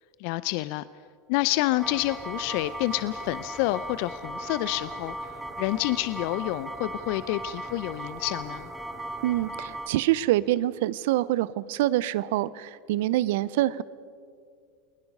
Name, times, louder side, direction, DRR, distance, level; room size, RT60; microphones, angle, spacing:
voice 1, 0.2-0.8 1.3-5.1 5.6-8.7, left 17 dB, 60° left, 16 dB, 0.5 m, -28 dB
sound 1, 1.8-9.9, right 1 dB, ahead, 4.0 m, -37 dB
voice 2, 9.2-13.8, right 15 dB, 70° right, 19 dB, 0.7 m, -25 dB
29.5 x 20.5 x 5.4 m, 2.3 s
hypercardioid pair, 90°, 0 cm